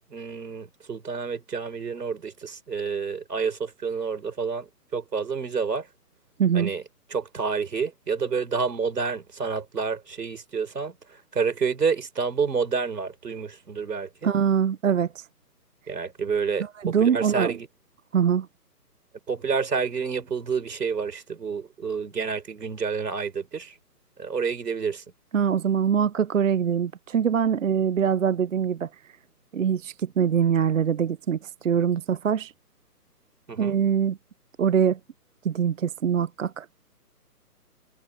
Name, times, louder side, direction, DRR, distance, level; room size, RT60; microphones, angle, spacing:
voice 1, 0.1-5.9 6.5-6.8 7.1-14.3 15.9-17.7 19.3-23.7 24.2-25.0 33.5-33.8, right 5 dB, 85° right, 4.4 m, -29 dB
voice 2, 6.4-6.7 14.2-15.3 16.6-17.6 18.1-18.5 25.3-28.9 29.5-32.5 33.6-34.2 34.6-35.0 35.4-36.7, right 7 dB, 55° right, 0.7 m, -23 dB
hypercardioid pair, 170°, 47 cm